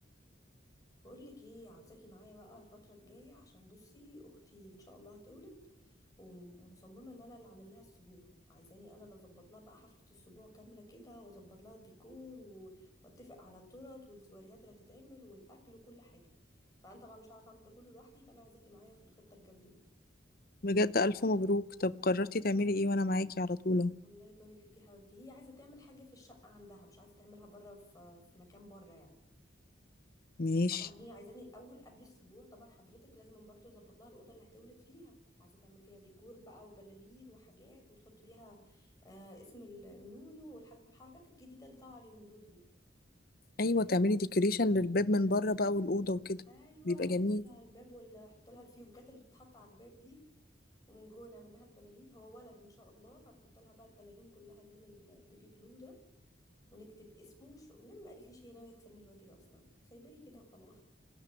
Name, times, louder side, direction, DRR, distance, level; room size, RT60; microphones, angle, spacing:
voice 1, 1.0-5.6 6.2-16.2 16.8-19.8 24.0-29.2 30.7-42.6 46.5-50.2 50.9-56.0 56.7-60.8, left 1 dB, 20° left, 2 dB, 6.4 m, -55 dB
voice 2, 20.6-23.9 30.4-30.9 43.6-46.4 46.9-47.4, left 2 dB, 50° left, 14 dB, 0.8 m, -29 dB
26.0 x 16.0 x 9.9 m, 0.89 s
head